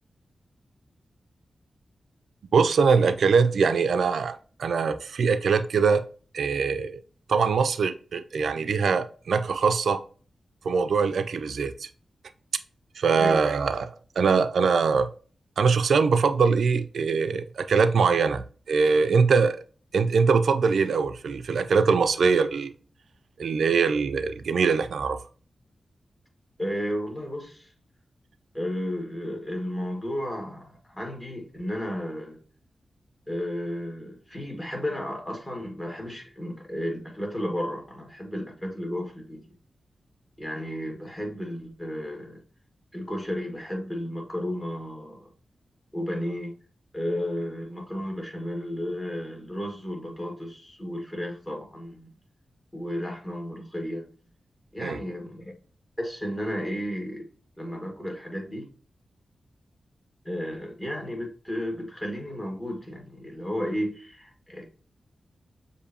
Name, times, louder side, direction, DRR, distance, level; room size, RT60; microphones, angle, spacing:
voice 1, 2.5-6.0 6.3-7.0 7.3-10.0 10.6-11.9 13.0-15.1 15.6-19.6 19.9-22.7 23.4-25.2 54.8-55.0, right 5 dB, 85° right, 0.3 m, -22 dB
voice 2, 26.6-27.7 28.5-32.4 33.3-39.5 40.4-42.4 42.9-45.3 45.9-46.5 46.9-52.1 52.7-54.1 54.7-55.5 56.0-57.3 57.6-58.7 60.2-64.7, equal, 20° left, 1.6 m, -33 dB
6.6 x 2.6 x 2.7 m
cardioid pair, 70°, 0 cm